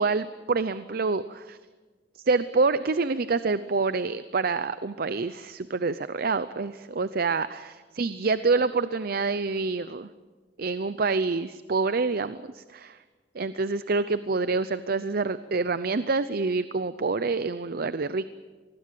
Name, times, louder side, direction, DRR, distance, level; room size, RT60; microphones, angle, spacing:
voice 1, 0.0-1.6 2.2-10.1 10.6-13.0 13.3-18.2, right 4 dB, 55° right, 14 dB, 0.6 m, -27 dB
25.5 x 20.0 x 7.6 m, 1.4 s
head